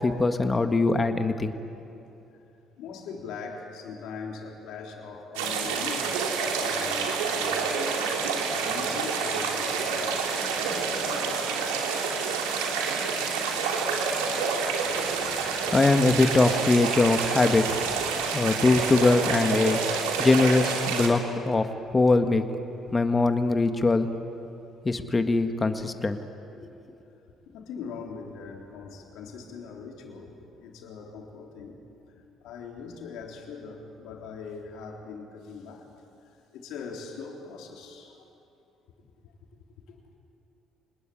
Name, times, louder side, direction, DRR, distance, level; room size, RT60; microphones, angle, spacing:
voice 1, 0.0-1.5 14.9-17.7 18.3-22.4 22.9-24.1 24.8-26.2 26.5-26.8, left 3 dB, 25° left, 7 dB, 1.7 m, -23 dB
voice 2, 2.8-11.6 27.5-31.8 32.4-35.9 36.2-38.3 39.0-39.3 39.9-40.2, left 5 dB, 70° left, 1 dB, 3.8 m, -41 dB
sound 1, 5.4-21.1, right 5 dB, 85° right, 2.9 m, -28 dB
27.0 x 20.5 x 8.7 m, 2.8 s
hypercardioid pair, 55°, 0 cm